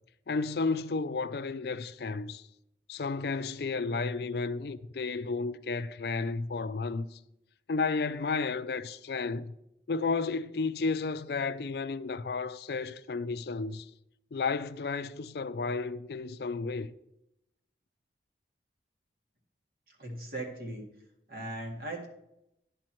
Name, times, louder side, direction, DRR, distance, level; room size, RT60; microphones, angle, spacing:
voice 1, 0.3-2.4 2.9-7.2 7.7-9.5 9.9-13.9 14.3-16.9, left 4 dB, 60° left, 0.4 m, -32 dB
voice 2, 19.9-20.8 21.3-22.1, right 1 dB, 55° right, 2.1 m, -38 dB
10.5 x 4.5 x 7.6 m
head